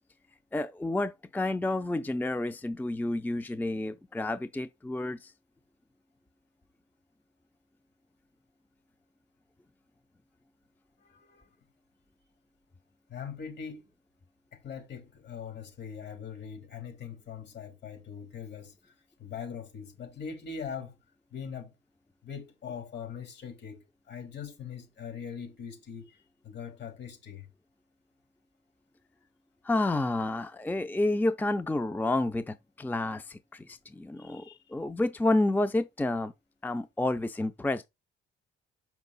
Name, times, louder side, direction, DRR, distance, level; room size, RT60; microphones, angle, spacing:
voice 1, 0.5-5.3 29.6-34.4 34.7-36.3 36.6-37.9, left 2 dB, 10° left, 0.5 m, -30 dB
voice 2, 11.0-11.5 13.1-13.9 14.5-18.9 19.2-21.0 21.3-21.7 22.2-23.8 24.1-27.5 34.2-34.6, left 7 dB, 60° left, 3.6 m, -41 dB
6.5 x 5.8 x 4.0 m
cardioid pair, 90°, 20 cm